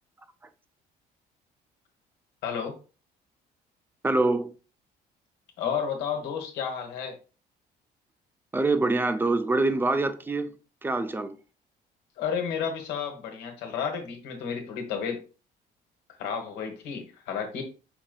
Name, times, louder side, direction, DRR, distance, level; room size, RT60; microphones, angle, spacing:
voice 1, 2.4-2.7 5.6-7.1 12.2-15.2 16.2-17.6, left 7 dB, 90° left, 1.3 m, -31 dB
voice 2, 4.0-4.5 8.5-10.6 10.8-11.4, right 2 dB, 10° right, 0.5 m, -25 dB
5.6 x 3.8 x 2.3 m
cardioid pair, 110°, 17 cm